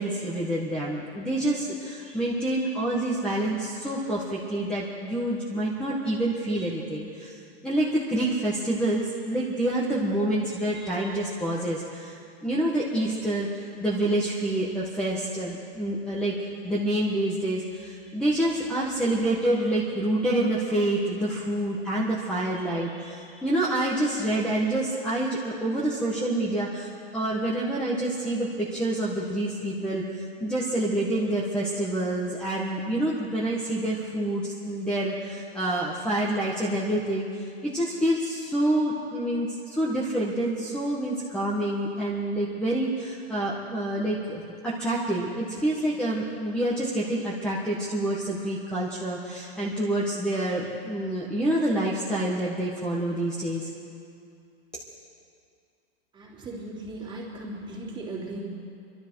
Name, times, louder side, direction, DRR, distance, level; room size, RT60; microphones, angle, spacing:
voice 1, 0.0-7.4 7.6-13.5 13.8-16.3 16.6-53.7, right 1 dB, 5° left, -5 dB, 1.5 m, -27 dB
voice 2, 56.1-58.5, right 2 dB, 15° right, -4 dB, 3.1 m, -37 dB
24.5 x 12.5 x 4.7 m, 2.4 s
supercardioid pair, 150°, 31 cm